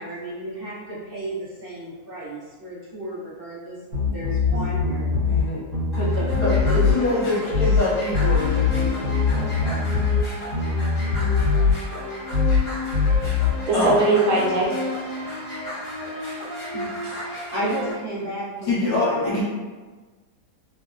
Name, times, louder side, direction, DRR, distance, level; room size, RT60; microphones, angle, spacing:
voice 1, 0.0-5.1 5.9-7.6 16.7-16.9 17.5-19.4, right 1 dB, 45° right, -10 dB, 1.0 m, -33 dB
sound 1, 3.9-5.4 5.7-7.0 7.5-7.8 8.1-10.2 10.5-11.8 12.3-12.6 12.9-13.5, left 5 dB, 70° right, 1.3 m, -21 dB
voice 2, 5.3-5.6 6.3-9.8 13.7-14.0 18.6-19.4, left 2 dB, 70° left, -6 dB, 1.2 m, -25 dB
sound 2, 5.9-17.9, left 1 dB, 30° left, 0.8 m, -32 dB
voice 3, 13.7-14.7 17.0-17.2, right 2 dB, 90° right, -2 dB, 1.2 m, -20 dB
3.1 x 2.0 x 2.4 m, 1.3 s
omnidirectional pair, 1.7 m